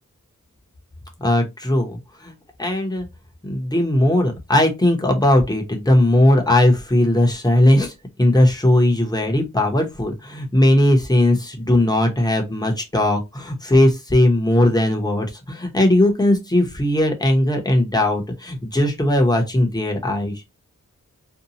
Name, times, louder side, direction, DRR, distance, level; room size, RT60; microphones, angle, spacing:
voice 1, 1.2-2.3 2.6-3.1 3.4-7.9 8.2-20.4, left 1 dB, 10° left, 0.8 m, -18 dB
2.7 x 2.2 x 2.8 m
wide cardioid pair, 80°, 32 cm